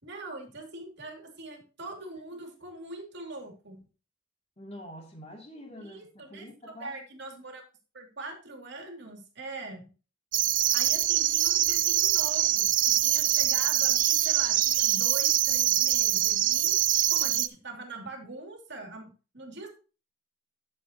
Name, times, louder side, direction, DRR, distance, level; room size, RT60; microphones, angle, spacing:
voice 1, 0.0-3.8 5.7-7.6 7.9-9.9 10.7-16.8 17.1-19.7, right 2 dB, 55° right, 2 dB, 2.8 m, -42 dB
voice 2, 4.6-7.0, equal, 30° left, 1 dB, 2.8 m, -45 dB
sound 1, 10.3-17.5, right 13 dB, 40° right, 0.4 m, -24 dB
11.0 x 7.6 x 3.0 m, 0.34 s
head